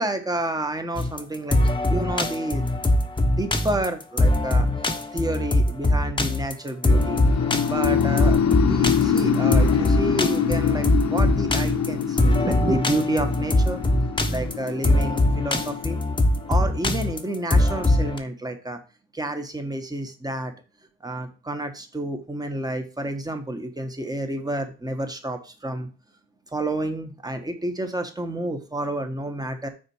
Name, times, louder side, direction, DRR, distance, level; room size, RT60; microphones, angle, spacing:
voice 1, 0.0-2.8 3.3-4.7 5.1-7.2 7.7-13.8 14.3-16.0 16.5-18.8 19.1-20.5 21.0-25.9 26.5-29.7, right 1 dB, 15° right, 6 dB, 1.5 m, -29 dB
sound 1, 1.0-18.2, left 1 dB, 15° left, 1.1 m, -22 dB
sound 2, 6.9-16.9, left 7 dB, 60° left, 1.1 m, -25 dB
6.3 x 4.3 x 6.5 m, 0.34 s
cardioid pair, 90°, 30 cm